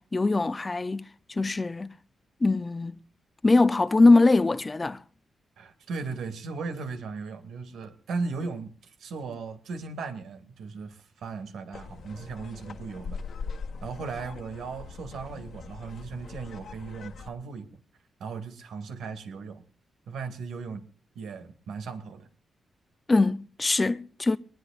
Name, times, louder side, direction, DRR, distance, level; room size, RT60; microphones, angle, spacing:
voice 1, 0.0-1.9 2.4-3.0 3.4-5.0 23.1-24.4, left 3 dB, 20° left, 0.6 m, -22 dB
voice 2, 5.6-13.2 13.8-17.7 18.2-19.6 20.1-20.9 21.1-22.3, right 4 dB, 85° right, 2.4 m, -37 dB
sound 1, 11.7-17.3, left 5 dB, 60° left, 1.7 m, -41 dB
22.0 x 19.5 x 2.5 m
cardioid pair, 125°, 0 cm